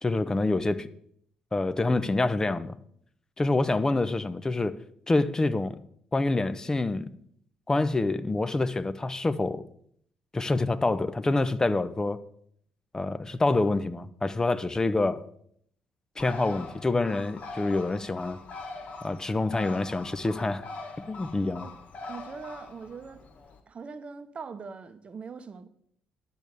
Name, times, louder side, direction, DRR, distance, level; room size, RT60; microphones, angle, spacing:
voice 1, 0.0-0.9 1.5-2.8 3.4-4.8 5.1-5.8 6.1-7.1 7.7-9.6 10.3-12.2 12.9-15.2 16.2-18.4 19.0-20.6 21.1-21.7, left 2 dB, 20° left, 0.8 m, -26 dB
Bird, 16.2-23.6, left 3 dB, 45° left, 1.6 m, -43 dB
voice 2, 22.1-23.3 23.7-25.7, right 5 dB, 35° right, 0.9 m, -42 dB
10.5 x 7.4 x 6.7 m
figure-of-eight pair, 45°, 3 cm